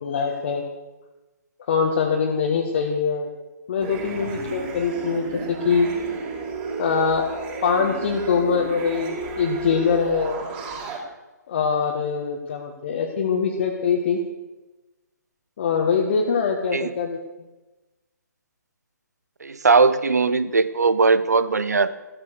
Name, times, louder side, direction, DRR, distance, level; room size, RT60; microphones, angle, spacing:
voice 1, 0.0-0.6 1.7-3.3 3.7-5.9 6.8-7.3 7.6-10.5 11.5-14.2 15.6-17.2, left 6 dB, 40° left, 0 dB, 1.9 m, -23 dB
sound 1, 3.8-11.0, right 4 dB, 25° right, 4.9 m, -32 dB
voice 2, 19.4-22.0, right 4 dB, 65° right, 15 dB, 1.1 m, -19 dB
15.0 x 13.5 x 6.6 m, 1.1 s
figure-of-eight pair, 130°, 10 cm